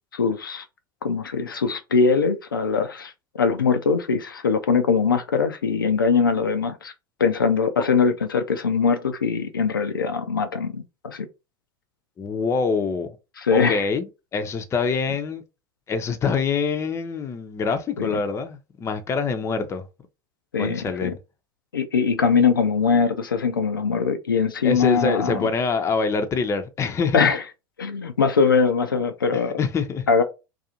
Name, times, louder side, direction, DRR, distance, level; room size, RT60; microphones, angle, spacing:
voice 1, 0.1-0.6 1.0-3.1 3.4-6.9 7.2-11.3 13.4-13.8 18.0-18.2 20.5-21.1 21.7-25.5 27.1-27.4 27.8-29.6 30.1-30.2, left 5 dB, 90° left, 0.4 m, -22 dB
voice 2, 12.2-13.1 13.5-14.1 14.3-15.4 15.9-19.8 20.6-21.1 24.6-27.3 29.3-30.1, left 5 dB, 25° left, 0.5 m, -25 dB
2.5 x 2.3 x 2.8 m
hypercardioid pair, 85°, 11 cm